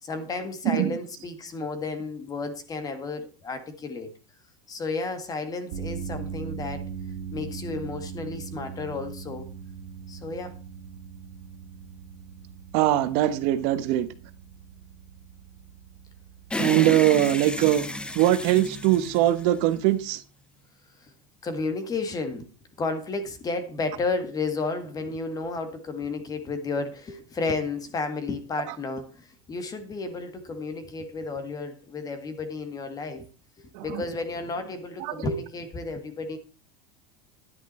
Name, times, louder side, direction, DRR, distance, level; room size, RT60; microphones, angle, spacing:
voice 1, 0.0-4.1 4.7-6.9 7.3-9.5 10.1-10.6 21.0-21.1 21.4-22.5 22.8-33.3 33.6-36.4, left 3 dB, 20° left, 1.9 m, -32 dB
voice 2, 0.6-1.0 12.7-14.1 16.6-17.8 18.1-20.2 33.7-34.0 35.0-35.2, right 13 dB, 60° right, 1.2 m, -22 dB
sound 1, 5.7-20.0, right 6 dB, 85° right, 2.0 m, -40 dB
sound 2, 16.5-20.0, left 2 dB, 5° left, 0.7 m, -32 dB
11.0 x 9.9 x 4.3 m
supercardioid pair, 145°, 17 cm